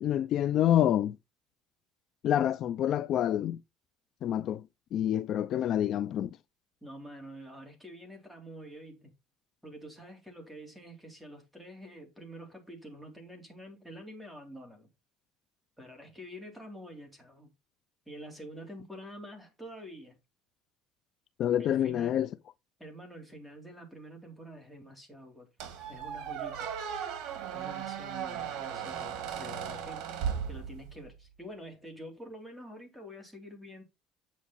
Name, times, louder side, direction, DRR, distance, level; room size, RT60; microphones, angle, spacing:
voice 1, 0.0-1.2 2.2-3.6 4.2-4.6 4.9-6.3 21.4-22.3, left 11 dB, 50° left, 0.4 m, -27 dB
voice 2, 6.8-9.1 9.6-14.9 15.8-17.5 18.0-20.2 21.6-22.2 22.8-25.5 25.9-26.7 27.5-33.8, equal, ahead, 3.3 m, -47 dB
Squeak, 25.6-31.1, right 8 dB, 65° right, 2.8 m, -37 dB
9.1 x 6.2 x 4.2 m
cardioid pair, 145°, 0 cm